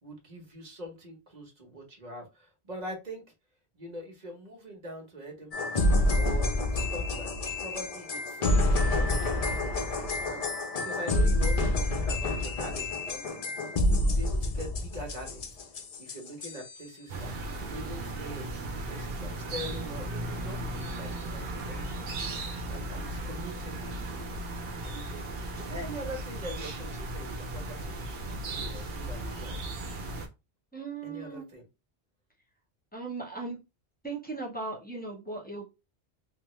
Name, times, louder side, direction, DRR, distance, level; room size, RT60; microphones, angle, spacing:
voice 1, 0.0-3.2 3.8-5.8 6.2-13.4 13.9-17.3 17.6-18.5 18.9-22.2 22.7-24.4 24.8-28.1 28.5-29.6 31.0-31.6, equal, 40° right, 1.1 m, -43 dB
sound 1, 5.5-16.9, left 1 dB, 55° left, 0.4 m, -28 dB
sound 2, 17.1-30.3, right 2 dB, 65° right, 0.9 m, -36 dB
voice 2, 30.7-31.4 32.9-33.6 34.0-35.7, right 3 dB, 10° left, 0.8 m, -37 dB
3.5 x 2.1 x 3.0 m
omnidirectional pair, 1.1 m